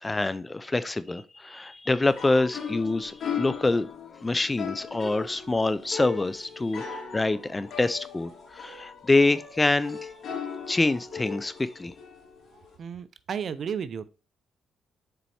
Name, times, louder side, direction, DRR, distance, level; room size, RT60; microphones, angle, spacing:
voice 1, 0.0-3.9 4.2-10.1 10.7-11.9, left 2 dB, 20° left, 0.5 m, -26 dB
sound 1, 2.0-12.7, left 7 dB, 65° left, 2.9 m, -38 dB
voice 2, 12.8-14.1, right 7 dB, 55° right, 0.6 m, -33 dB
6.9 x 4.5 x 4.3 m
cardioid pair, 90°, 0 cm